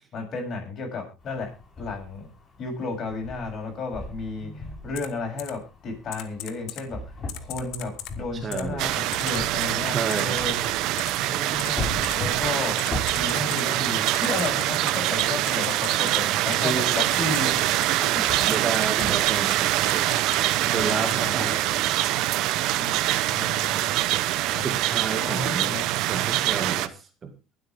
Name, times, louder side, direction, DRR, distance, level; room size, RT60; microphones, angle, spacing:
voice 1, 0.1-1.5 1.8-2.2 2.6-10.6 11.3-12.7 13.2-17.7 18.4-18.6 20.6-21.8 22.8-23.0 23.3-23.9 24.5-24.8 25.2-26.3, left 3 dB, 45° left, 1 dB, 7.5 m, -33 dB
sound 1, 1.2-20.9, left 2 dB, 30° left, 6.3 m, -41 dB
voice 2, 4.4-4.8 8.4-8.9 9.9-10.3 16.6-17.0 18.5-20.1 20.7-21.6 24.6-25.7 26.1-27.3, right 5 dB, 35° right, 7 dB, 2.1 m, -31 dB
Typing, 4.9-5.1 5.4-5.5 6.1-6.8 7.3-8.1 8.5-8.6 9.1-9.4 10.1-10.2 11.0-11.1 11.6-11.7 12.0-12.1 12.8-13.6 14.1-16.2 16.5-16.6 17.1-17.9 18.4-19.6 19.9-20.4 20.9-21.2, left 15 dB, 70° left, 1.4 m, -37 dB
sound 2, 8.8-26.9, right 15 dB, 70° right, 0.8 m, -24 dB
23.0 x 8.3 x 3.6 m, 0.31 s
supercardioid pair, 105°, 0 cm